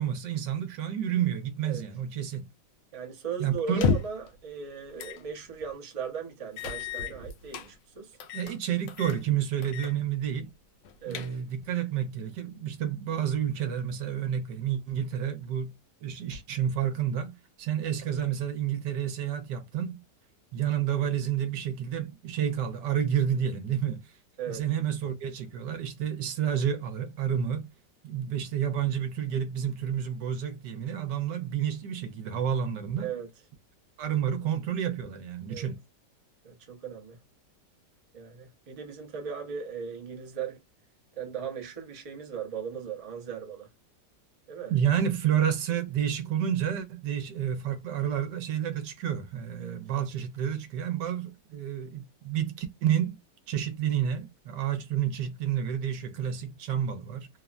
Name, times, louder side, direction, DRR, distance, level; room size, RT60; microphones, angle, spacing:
voice 1, 0.0-2.5 3.4-3.9 8.3-10.5 11.1-15.7 16.0-20.0 20.5-24.1 24.5-27.7 28.0-33.1 34.0-35.8 44.7-53.2 53.5-57.3, right 9 dB, 75° right, 1.2 m, -30 dB
voice 2, 2.9-8.2 11.0-11.3 24.4-24.6 33.0-33.3 35.5-35.7 36.4-37.2 38.1-40.6 41.2-43.7 44.5-44.7 49.6-49.8, right 6 dB, 45° right, 0.4 m, -37 dB
sound 1, 3.7-4.3 5.0-5.2 5.6-5.7 6.6-7.7 8.2-8.6 8.9-9.2 9.6-9.9 10.3-10.4 10.8-11.6, left 6 dB, 90° left, 1.3 m, -31 dB
3.4 x 2.1 x 2.3 m
omnidirectional pair, 1.9 m